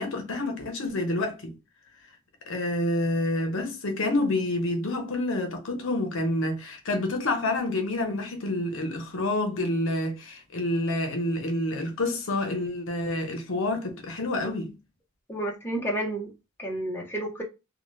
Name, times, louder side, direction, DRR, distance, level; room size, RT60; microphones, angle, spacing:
voice 1, 0.0-1.5 2.5-14.7, left 1 dB, 60° left, 0.7 m, -28 dB
voice 2, 15.3-16.3 16.6-17.4, right 1 dB, 10° left, 0.6 m, -30 dB
2.8 x 2.1 x 3.1 m
head